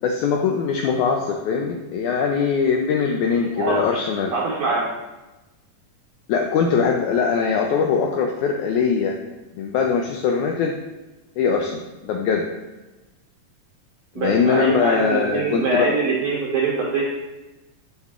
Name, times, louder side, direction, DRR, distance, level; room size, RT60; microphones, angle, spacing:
voice 1, 0.0-4.3 6.3-9.2 9.6-10.8 11.4-12.5 14.2-15.9, left 6 dB, 85° left, 2 dB, 1.7 m, -21 dB
voice 2, 3.6-4.0 4.3-4.9 14.1-17.0, right 4 dB, 80° right, -3 dB, 1.5 m, -23 dB
7.3 x 6.5 x 2.4 m, 1.1 s
omnidirectional pair, 3.9 m